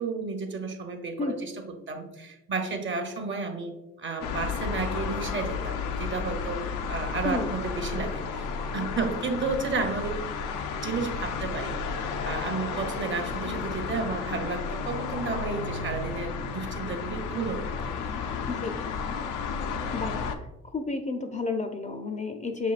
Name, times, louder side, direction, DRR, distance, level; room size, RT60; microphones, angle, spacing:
voice 1, 0.0-1.5 1.9-8.5 8.7-10.2 10.8-18.0, right 4 dB, 40° right, 5 dB, 0.7 m, -32 dB
sound 1, 4.2-20.4, left 5 dB, 85° left, 0.5 m, -32 dB
voice 2, 7.2-7.6 18.5-18.7 19.9-20.2 20.6-22.7, left 3 dB, 25° left, 5 dB, 0.4 m, -31 dB
6.6 x 2.7 x 2.4 m, 0.94 s
cardioid pair, 90°, 30 cm